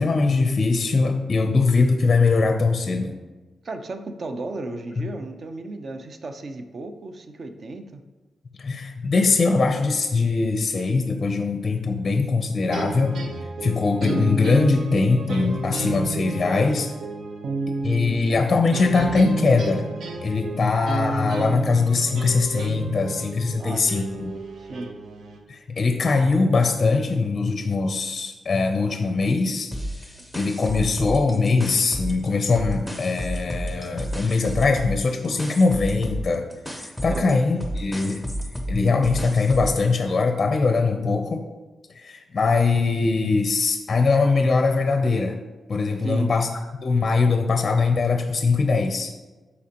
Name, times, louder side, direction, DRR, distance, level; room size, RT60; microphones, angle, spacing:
voice 1, 0.0-3.1 5.0-5.1 8.6-13.2 13.6-16.9 17.8-19.9 20.2-24.3 25.5-29.7 30.3-36.5 36.8-38.2 38.7-41.4 42.0-45.4 45.7-46.5 46.8-49.1, left 4 dB, 35° left, 5 dB, 0.5 m, -21 dB
voice 2, 3.6-8.0 23.6-23.9 24.6-24.9 37.1-37.4 46.0-46.3, right 2 dB, 40° right, 7 dB, 0.6 m, -34 dB
sound 1, 12.7-25.4, right 3 dB, 75° right, 0.8 m, -31 dB
sound 2, 29.7-32.3 32.6-39.8, equal, ahead, 0.7 m, -31 dB
12.5 x 4.2 x 2.9 m, 1.2 s
wide cardioid pair, 160°, 0 cm